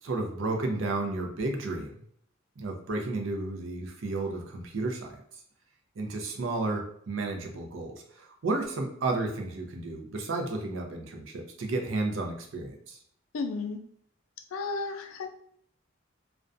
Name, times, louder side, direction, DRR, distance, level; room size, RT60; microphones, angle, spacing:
voice 1, 0.0-1.9 2.6-5.2 6.0-13.0, right 2 dB, 70° right, 2 dB, 0.5 m, -32 dB
voice 2, 13.3-13.8 14.5-15.4, left 3 dB, 90° left, 7 dB, 0.4 m, -33 dB
2.4 x 2.1 x 2.5 m, 0.64 s
head